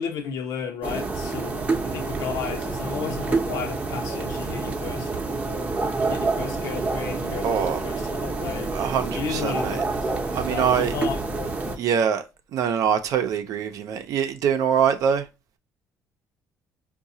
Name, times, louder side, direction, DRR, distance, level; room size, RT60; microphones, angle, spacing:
voice 1, 0.0-5.1 6.0-10.1 10.4-11.2, left 7 dB, 75° left, 0.8 m, -34 dB
sound 1, 0.8-11.8, right 3 dB, 25° right, 0.7 m, -28 dB
voice 2, 7.4-7.8 8.7-9.8 10.3-10.9 11.8-12.2 12.5-15.2, right 8 dB, 70° right, 0.6 m, -24 dB
4.7 x 2.3 x 2.7 m
cardioid pair, 110°, 6 cm